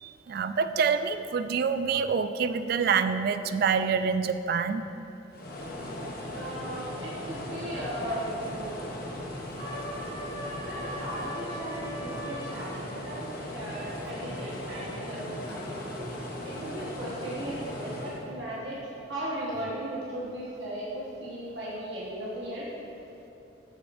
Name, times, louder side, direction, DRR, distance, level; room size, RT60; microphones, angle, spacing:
voice 1, 0.0-4.8, right 6 dB, 55° right, 11 dB, 0.3 m, -26 dB
sound 1, 5.3-18.2, left 1 dB, 55° left, 0.9 m, -38 dB
voice 2, 6.3-8.8 10.6-16.2 16.4-18.8 19.0-22.7, right 1 dB, 70° right, -8 dB, 1.4 m, -37 dB
sound 2, 7.6-8.2 9.6-12.6, equal, 30° left, 1.1 m, -40 dB
13.5 x 4.8 x 2.6 m, 2.9 s
head